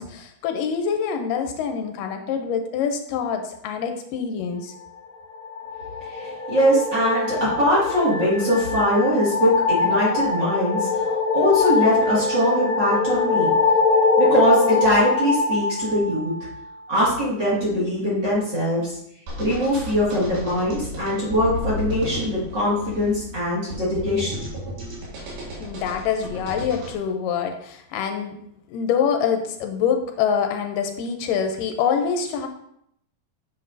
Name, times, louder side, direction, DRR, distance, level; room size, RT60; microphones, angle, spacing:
voice 1, 0.0-4.7 25.6-28.4 28.7-32.5, left 7 dB, 80° left, 5 dB, 2.2 m, -25 dB
sound 1, 5.3-16.7, left 4 dB, 65° left, 1.9 m, -23 dB
voice 2, 6.0-13.5 14.2-16.3 16.9-19.0 19.4-24.4, equal, 35° right, -7 dB, 2.3 m, -22 dB
sound 2, 19.3-26.9, left 1 dB, 75° right, 3.5 m, -33 dB
8.7 x 7.1 x 2.7 m, 0.74 s
omnidirectional pair, 4.0 m